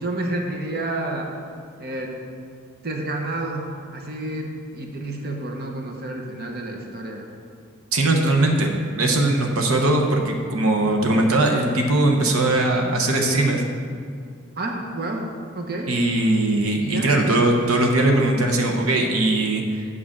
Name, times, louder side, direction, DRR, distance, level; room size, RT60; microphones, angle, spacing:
voice 1, 0.0-1.3 1.8-2.2 2.8-7.3 12.2-12.3 14.6-15.3 15.5-15.9 16.8-17.1, right 2 dB, 50° right, 1 dB, 0.9 m, -30 dB
voice 2, 7.9-13.6 15.9-19.8, right 2 dB, 80° right, 2 dB, 0.9 m, -20 dB
7.6 x 4.9 x 7.3 m, 2.2 s
head